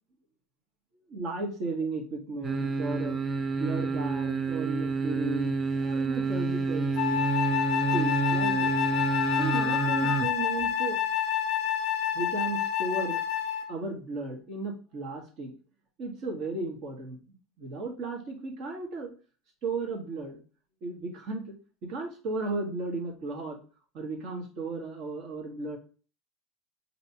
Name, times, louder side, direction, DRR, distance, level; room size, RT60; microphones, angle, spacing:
voice 1, 1.1-3.2 3.5-7.2 7.9-8.7 9.4-11.0 12.1-13.2 13.7-15.5 16.0-19.1 19.6-20.4 20.8-21.5 21.8-23.6 23.9-25.8, right 3 dB, 40° right, 1 dB, 1.5 m, -35 dB
sound 1, 2.4-10.3 10.6-10.7, right 4 dB, 15° right, 0.4 m, -29 dB
Wind instrument woodwind instrument, 7.0-13.7, left 10 dB, 45° left, 0.5 m, -28 dB
5.2 x 2.9 x 2.9 m, 0.37 s
supercardioid pair, 150°, 0 cm